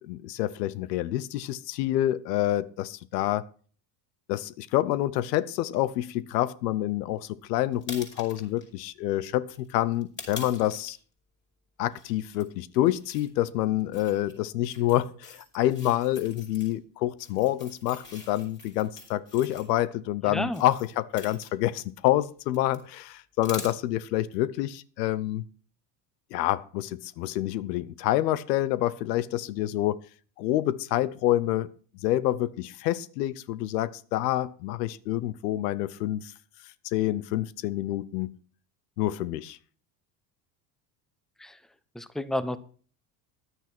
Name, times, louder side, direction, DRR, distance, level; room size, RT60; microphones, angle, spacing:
voice 1, 0.0-3.4 4.3-11.0 11.8-25.4 26.3-30.0 30.4-31.7 32.0-36.3 36.8-38.3 39.0-39.6, left 14 dB, 85° left, 0.8 m, -27 dB
sound 1, 7.7-8.7 9.5-10.9 11.9-12.4 13.0-13.3 13.8-14.3 14.6-16.7 17.2-19.6 20.5-21.9 22.2-22.8 23.0-23.1 23.4-23.7, left 3 dB, 20° left, 5.7 m, -44 dB
voice 2, 20.3-20.6 41.4-41.5 41.9-42.6, left 1 dB, ahead, 0.8 m, -30 dB
11.0 x 9.1 x 5.9 m
supercardioid pair, 85°, 47 cm